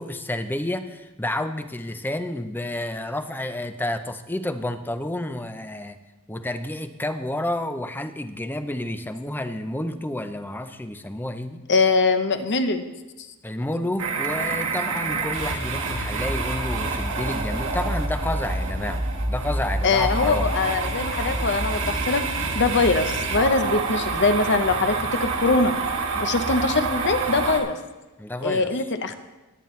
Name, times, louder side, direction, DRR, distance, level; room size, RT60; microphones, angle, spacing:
voice 1, 0.0-6.0 6.3-11.6 13.4-20.5 28.2-28.7, left 1 dB, 10° left, 9 dB, 0.6 m, -30 dB
voice 2, 11.7-12.8 19.8-22.2 22.5-25.7 26.1-27.8 28.4-29.1, left 3 dB, 55° left, 9 dB, 0.9 m, -22 dB
sound 1, 14.0-27.6, right 3 dB, 80° right, 1.7 m, -27 dB
19.5 x 8.8 x 3.2 m, 1.1 s
head